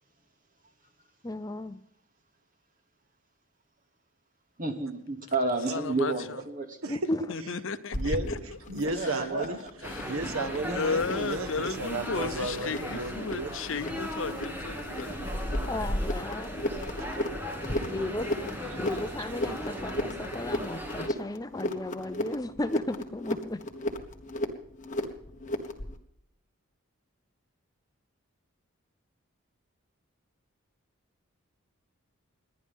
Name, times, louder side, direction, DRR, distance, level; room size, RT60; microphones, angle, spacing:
voice 1, 1.2-1.8 6.9-7.2 15.7-16.7 17.9-18.3 18.8-23.6, left 1 dB, 15° left, 0.6 m, -34 dB
voice 2, 4.6-6.7 8.8-9.6, right 3 dB, 40° right, 2.2 m, -31 dB
voice 3, 5.7-6.4 7.3-8.4 8.9-9.2 9.8-10.2 10.7-15.4 17.9-18.5, left 4 dB, 65° left, 0.8 m, -35 dB
sound 1, 7.9-26.0, left 1 dB, 35° left, 1.5 m, -35 dB
voice 4, 7.9-9.6 10.0-13.5 18.7-18.8, right 2 dB, 80° right, 1.2 m, -33 dB
sound 2, 9.8-21.1, equal, 10° right, 2.0 m, -37 dB
29.5 x 10.5 x 3.6 m
head